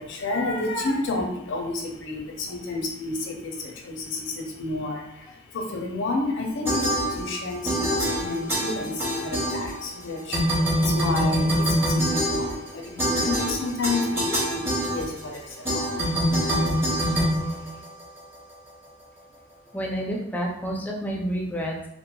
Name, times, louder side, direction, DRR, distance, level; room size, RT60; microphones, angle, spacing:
voice 1, 0.0-16.3 16.9-17.3 17.6-17.7, left 2 dB, 65° left, 1 dB, 0.5 m, -31 dB
sound 1, 6.6-7.4 7.6-10.0 10.3-18.2, equal, 10° right, 0.8 m, -25 dB
voice 2, 19.7-21.9, equal, 10° left, -1 dB, 0.4 m, -29 dB
2.9 x 2.1 x 2.2 m, 0.82 s
head